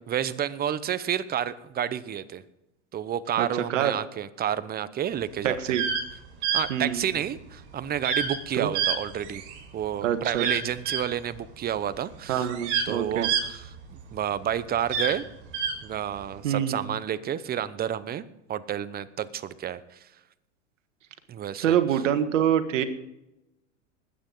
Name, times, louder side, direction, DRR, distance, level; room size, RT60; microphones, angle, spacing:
voice 1, 0.1-2.4 2.9-5.8 6.5-9.4 9.7-12.5 12.8-15.2 15.8-18.2 18.5-19.8 21.3-21.8, right 10 dB, 25° right, 15 dB, 0.8 m, -30 dB
voice 2, 3.4-3.9 5.4-5.8 6.7-7.1 8.6-8.7 10.0-10.4 12.3-13.3 16.4-16.8 21.6-22.8, right 9 dB, 80° right, 10 dB, 1.6 m, -25 dB
sound 1, 5.6-6.0 6.4-6.6 8.0-8.4 8.7-9.6 10.3-11.0 11.9-12.0 12.4-14.2 14.8-15.7, right 6 dB, 65° right, 5.4 m, -27 dB
20.5 x 9.1 x 4.0 m, 0.89 s
hypercardioid pair, 110°, 37 cm